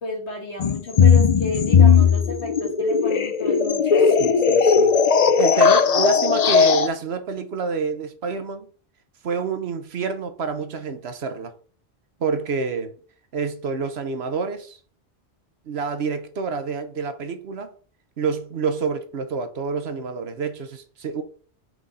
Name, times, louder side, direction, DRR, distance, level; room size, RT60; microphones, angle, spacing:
voice 1, 0.0-4.3, left 1 dB, 70° left, 2.3 m, -32 dB
sound 1, 0.6-6.9, left 6 dB, 45° left, 0.5 m, -17 dB
voice 2, 4.2-5.0 5.4-8.7 9.2-11.6 12.2-12.9 13.3-14.8 15.7-17.7 18.2-21.2, right 5 dB, 65° right, 1.1 m, -28 dB
5.9 x 4.8 x 4.1 m
omnidirectional pair, 1.2 m